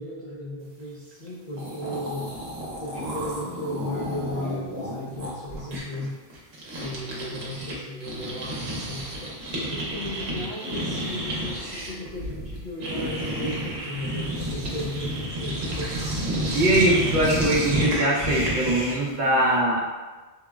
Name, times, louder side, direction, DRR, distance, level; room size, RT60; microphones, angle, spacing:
voice 1, 0.0-2.3 2.8-6.2 6.8-9.1 9.5-15.9, left 1 dB, 50° left, -8 dB, 0.7 m, -35 dB
sound 1, 1.3-1.4 1.5-7.7 8.0-19.1, right 1 dB, 75° right, 1.0 m, -31 dB
voice 2, 16.5-19.9, right 1 dB, 55° right, -4 dB, 0.7 m, -22 dB
3.6 x 2.0 x 2.3 m, 1.2 s
omnidirectional pair, 1.1 m